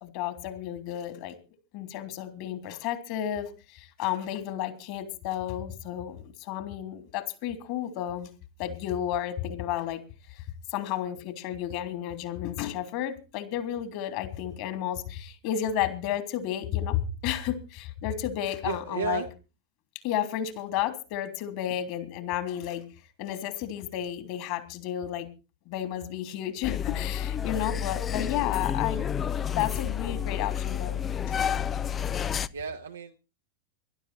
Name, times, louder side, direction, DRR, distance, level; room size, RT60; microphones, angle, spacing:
voice 1, 0.0-1.3 1.7-8.3 8.6-10.0 10.7-19.2 20.0-22.8 23.2-25.3 25.7-31.0, left 11 dB, 45° left, 9 dB, 3.2 m, -32 dB
voice 2, 18.6-19.3 32.5-33.2, right 6 dB, 70° right, 5 dB, 1.2 m, -33 dB
sound 1, 26.6-32.5, left 9 dB, 25° left, 0.7 m, -30 dB
19.5 x 12.0 x 4.4 m, 0.32 s
figure-of-eight pair, 90°, 0 cm